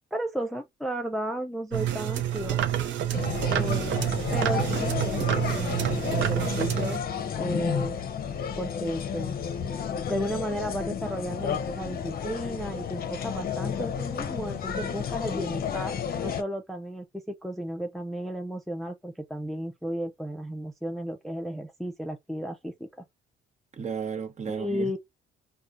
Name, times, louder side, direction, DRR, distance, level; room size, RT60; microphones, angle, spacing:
voice 1, 0.1-2.6 3.5-3.9 4.3-7.0 7.4-7.9 8.6-9.3 10.1-15.9 16.2-17.1 17.4-23.0 24.5-25.0, equal, ahead, 0.4 m, -34 dB
sound 1, 1.7-7.0, right 11 dB, 70° right, 0.6 m, -28 dB
sound 2, 3.1-16.4, left 8 dB, 50° left, 0.6 m, -32 dB
voice 2, 3.3-4.0 23.7-25.0, right 6 dB, 35° right, 0.9 m, -35 dB
4.6 x 2.2 x 2.5 m
cardioid pair, 90°, 20 cm